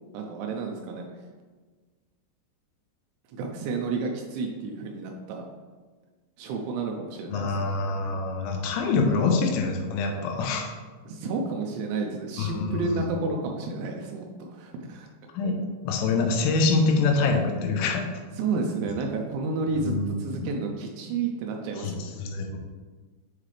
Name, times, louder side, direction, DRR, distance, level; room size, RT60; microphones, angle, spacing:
voice 1, 0.1-1.3 3.3-5.4 6.4-7.7 10.0-10.1 11.1-15.1 18.3-22.1, right 4 dB, 80° right, 1 dB, 2.7 m, -31 dB
voice 2, 7.3-10.8 12.4-13.0 15.3-15.6 15.8-18.1 19.9-20.5 21.8-21.9 22.2-22.6, left 3 dB, 90° left, 2 dB, 3.1 m, -25 dB
8.2 x 3.8 x 3.2 m, 1.4 s
omnidirectional pair, 5.1 m